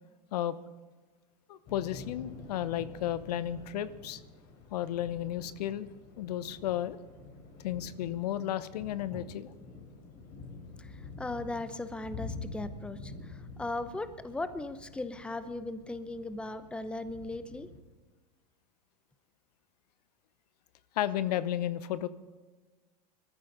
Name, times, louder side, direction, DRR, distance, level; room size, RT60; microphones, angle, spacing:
voice 1, 1.5-4.2 4.7-5.9 6.2-7.0 7.6-9.5 21.0-22.1, left 12 dB, 75° left, 15 dB, 0.8 m, -33 dB
Thunder / Rain, 1.6-17.8, left 3 dB, 45° left, 4.3 m, -47 dB
voice 2, 10.8-17.7, left 2 dB, 5° left, 12 dB, 0.7 m, -38 dB
21.5 x 14.0 x 3.9 m, 1.3 s
hypercardioid pair, 110°, 21 cm